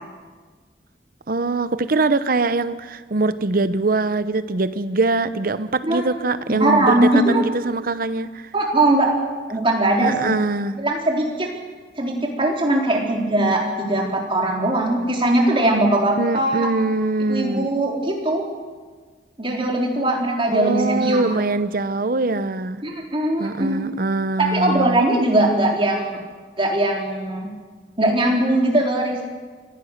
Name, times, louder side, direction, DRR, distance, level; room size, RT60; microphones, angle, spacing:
voice 1, 1.3-8.5 10.0-10.8 16.2-17.7 20.5-22.8 23.4-25.0, right 3 dB, 55° right, 13 dB, 0.8 m, -22 dB
voice 2, 6.6-7.4 8.5-9.1 9.5-10.1 10.8-11.5 12.0-16.7 17.3-18.4 19.4-21.5 22.8-23.9 24.4-26.2 26.6-27.5 28.0-29.2, right 1 dB, 30° right, 0 dB, 3.7 m, -20 dB
24.5 x 16.0 x 6.6 m, 1.5 s
head